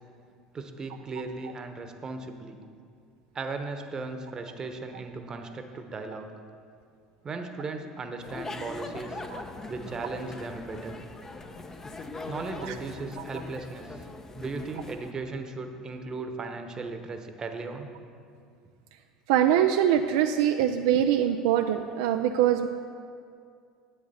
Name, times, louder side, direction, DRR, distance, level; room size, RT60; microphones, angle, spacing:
voice 1, 0.5-2.6 3.3-6.3 7.2-9.2 9.7-10.9 12.3-14.0 14.4-17.9, right 3 dB, 30° right, 6 dB, 1.0 m, -37 dB
sound 1, 8.2-15.1, left 3 dB, 20° left, 0.8 m, -41 dB
voice 2, 19.3-22.7, right 10 dB, 70° right, 6 dB, 0.4 m, -23 dB
10.0 x 8.3 x 4.2 m, 2.3 s
hypercardioid pair, 70°, 2 cm